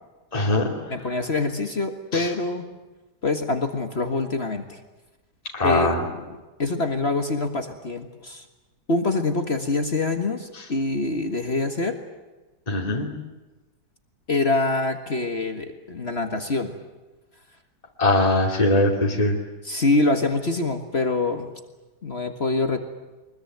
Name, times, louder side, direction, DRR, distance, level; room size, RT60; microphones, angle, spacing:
voice 1, 0.3-0.6 2.1-2.3 5.5-6.0 12.7-13.1 18.0-19.4, left 2 dB, 20° left, -1 dB, 2.8 m, -21 dB
voice 2, 0.9-2.7 3.2-4.8 5.6-6.3 6.6-8.5 8.9-12.0 14.3-16.8 19.6-21.5 22.0-22.8, left 2 dB, 40° left, 6 dB, 1.9 m, -25 dB
24.0 x 21.5 x 9.3 m, 1.1 s
omnidirectional pair, 1.8 m